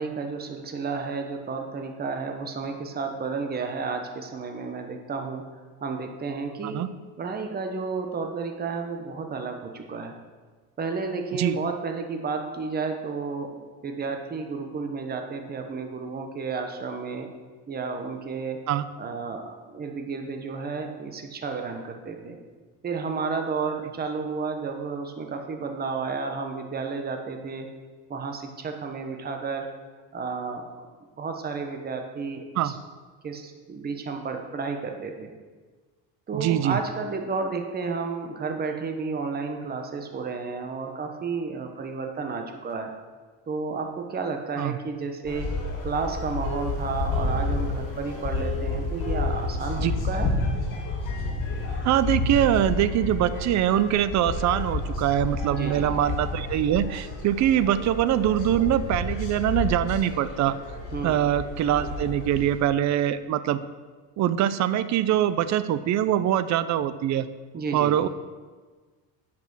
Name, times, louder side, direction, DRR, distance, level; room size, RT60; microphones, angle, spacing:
voice 1, 0.0-5.4 5.8-6.8 7.2-10.1 10.8-17.3 17.7-18.6 19.0-19.4 19.7-22.4 22.8-27.7 28.1-29.7 30.1-30.6 31.2-32.7 33.2-35.3 36.3-42.9 43.5-45.5 45.8-50.3 55.5-55.9 60.9-61.2 67.5-68.0, right 4 dB, 25° right, 4 dB, 1.1 m, -32 dB
voice 2, 36.3-36.8 44.6-44.8 49.8-49.9 51.8-60.6 61.0-63.6 64.2-67.3 67.7-68.1, right 11 dB, 45° right, 14 dB, 0.6 m, -23 dB
sound 1, 45.2-62.6, left 3 dB, 55° left, 2.8 m, -30 dB
10.0 x 6.1 x 6.1 m, 1.4 s
cardioid pair, 120°, 38 cm